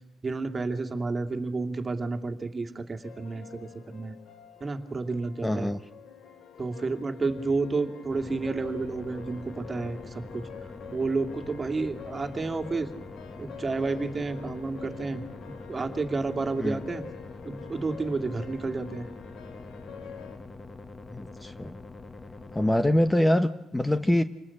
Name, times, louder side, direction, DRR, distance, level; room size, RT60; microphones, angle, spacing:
voice 1, 0.2-4.1 4.6-5.7 6.6-10.4 10.9-12.9 13.4-17.0 17.4-19.1, right 3 dB, 30° right, 5 dB, 2.6 m, -31 dB
sound 1, 3.0-20.4, left 7 dB, 75° left, 3.4 m, -47 dB
voice 2, 5.4-5.8 16.6-16.8 21.1-21.8 22.5-24.2, left 1 dB, 10° left, 10 dB, 1.0 m, -24 dB
sound 2, 8.1-23.1, left 3 dB, 30° left, 1.7 m, -44 dB
27.5 x 19.5 x 8.7 m, 0.94 s
cardioid pair, 90°, 0 cm